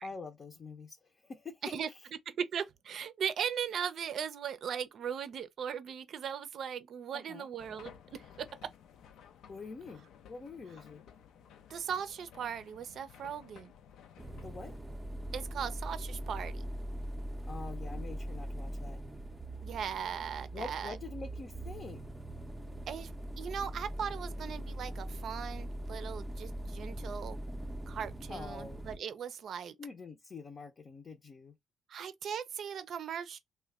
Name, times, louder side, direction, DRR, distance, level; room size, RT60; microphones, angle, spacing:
voice 1, 0.0-1.8 7.1-7.5 9.5-11.0 14.4-14.7 17.5-19.0 20.5-22.0 28.3-28.8 29.8-31.5, left 4 dB, 40° left, 0.6 m, -45 dB
voice 2, 2.3-8.7 11.7-13.7 15.3-16.6 19.6-21.0 22.9-27.4 27.9-29.8 31.9-33.4, right 8 dB, 65° right, 0.5 m, -38 dB
sound 1, 7.6-14.8, left 8 dB, 80° left, 0.5 m, -56 dB
sound 2, 14.2-29.0, right 1 dB, 5° right, 0.5 m, -41 dB
3.0 x 2.2 x 3.5 m
cardioid pair, 90°, 0 cm